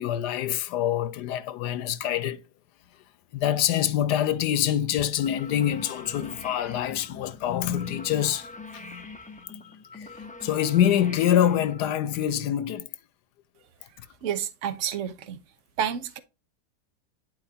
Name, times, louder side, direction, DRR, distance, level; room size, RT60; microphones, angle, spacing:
voice 1, 0.0-2.4 3.3-9.6 9.9-12.9, left 10 dB, 90° left, 1.3 m, -26 dB
sound 1, 5.2-12.3, left 3 dB, 10° left, 0.4 m, -43 dB
voice 2, 14.2-15.4 15.8-16.2, right 9 dB, 55° right, 1.2 m, -30 dB
10.5 x 4.5 x 2.8 m
omnidirectional pair, 1.7 m